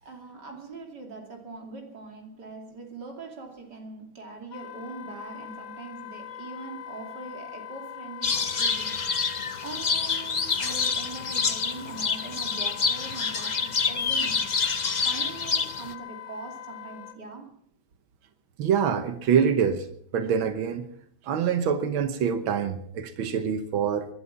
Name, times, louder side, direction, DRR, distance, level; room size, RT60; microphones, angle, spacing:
voice 1, 0.0-9.0 9.6-14.5 15.0-17.5, right 3 dB, 55° right, 3.2 m, -42 dB
Wind instrument woodwind instrument, 4.5-17.2, left 10 dB, 80° left, 2.4 m, -42 dB
sound 1, 8.2-15.9, left 5 dB, 65° left, 0.4 m, -27 dB
voice 2, 18.6-19.9 20.1-20.9 21.2-24.1, right 7 dB, 85° right, 1.9 m, -25 dB
20.5 x 12.0 x 5.7 m
omnidirectional pair, 2.2 m